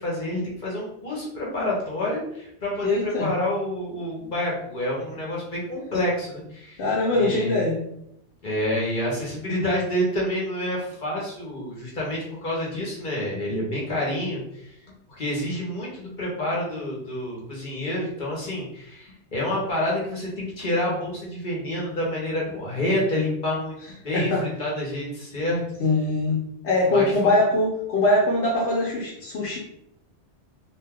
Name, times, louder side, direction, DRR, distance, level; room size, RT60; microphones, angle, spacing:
voice 1, 0.0-6.8 7.1-7.5 8.4-14.8 15.1-23.7 24.0-25.6 26.9-27.3, left 1 dB, 50° left, -4 dB, 0.9 m, -28 dB
voice 2, 2.8-3.3 6.8-7.8 24.1-24.4 25.8-26.4 26.6-29.6, left 2 dB, 75° left, -4 dB, 0.9 m, -22 dB
2.6 x 2.2 x 3.4 m, 0.76 s
omnidirectional pair, 1.1 m